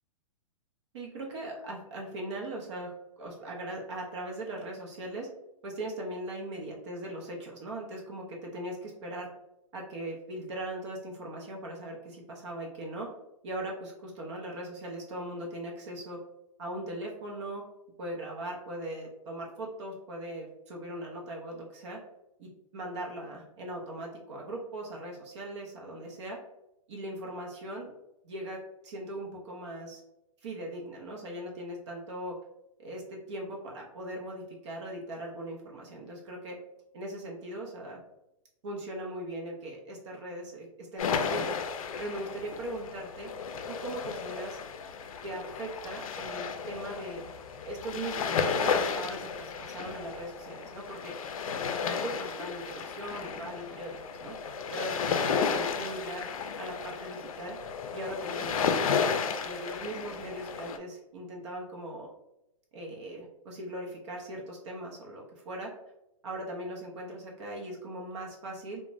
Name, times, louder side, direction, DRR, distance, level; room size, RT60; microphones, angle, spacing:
voice 1, 0.9-5.3 5.6-9.3 9.7-13.1 13.4-16.2 16.6-17.6 18.0-22.0 22.4-26.4 26.9-27.9 28.2-30.0 30.4-32.4 32.8-36.6 36.9-38.0 38.6-41.5 42.0-43.3 43.7-44.6 45.2-47.2 47.5-51.2 51.9-54.4 54.7-56.2 56.6-57.6 57.9-59.1 59.4-62.1 62.7-65.7 66.2-68.8, right 1 dB, 55° right, -1 dB, 0.6 m, -39 dB
sound 1, 41.0-60.8, left 6 dB, 80° left, 0.4 m, -33 dB
2.5 x 2.1 x 3.0 m, 0.88 s
hypercardioid pair, 150°, 18 cm